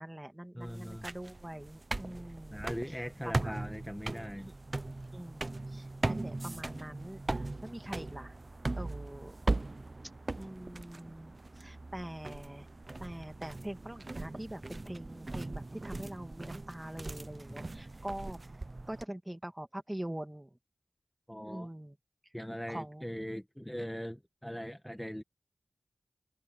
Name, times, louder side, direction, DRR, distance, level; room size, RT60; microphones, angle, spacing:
voice 1, 0.0-3.6 4.4-4.5 5.1-8.4 8.7-9.4 10.3-12.7 13.0-18.4 18.9-20.5 21.5-22.0 22.4-23.1, right 1 dB, 15° right, 2.3 m, -44 dB
voice 2, 0.6-1.1 2.5-4.5 17.5-17.6 21.3-21.7 22.3-25.2, equal, 5° left, 1.8 m, -40 dB
sound 1, 0.6-19.0, right 2 dB, 40° right, 0.8 m, -39 dB
wide cardioid pair, 60°, 0 cm